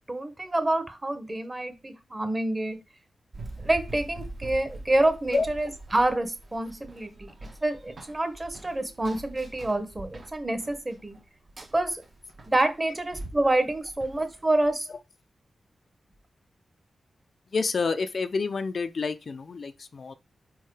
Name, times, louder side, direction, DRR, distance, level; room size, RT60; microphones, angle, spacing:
voice 1, 0.1-2.8 3.6-7.3 7.6-11.2 11.7-12.0 12.5-14.9, right 1 dB, 25° right, 1.2 m, -27 dB
Run, 3.3-14.7, right 2 dB, 50° right, 1.4 m, -44 dB
voice 2, 17.5-20.1, left 4 dB, 60° left, 0.5 m, -28 dB
4.7 x 4.3 x 4.8 m
cardioid pair, 75°, 0 cm